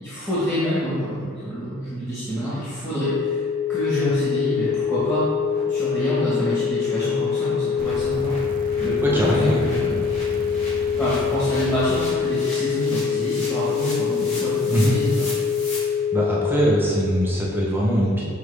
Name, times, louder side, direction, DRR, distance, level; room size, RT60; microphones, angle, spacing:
voice 1, 0.0-3.4 3.7-5.3 5.6-8.3 8.8-10.0 11.0-15.3, equal, 10° left, -11 dB, 1.1 m, -27 dB
sound 1, 2.8-2.9 3.2-3.3 3.7-3.8 4.1-4.2 4.6-4.7 5.0-5.2 5.5-5.6 5.9-15.8, left 1 dB, 30° left, 1.6 m, -39 dB
sound 2, 3.0-16.8, left 8 dB, 85° left, 0.4 m, -25 dB
sound 3, 7.8-12.0 13.0-13.1, right 1 dB, 40° right, 0.4 m, -35 dB
voice 2, 9.1-9.6 14.7-15.0 16.1-18.2, equal, 10° right, -5 dB, 0.8 m, -21 dB
7.2 x 4.5 x 3.3 m, 2.1 s
head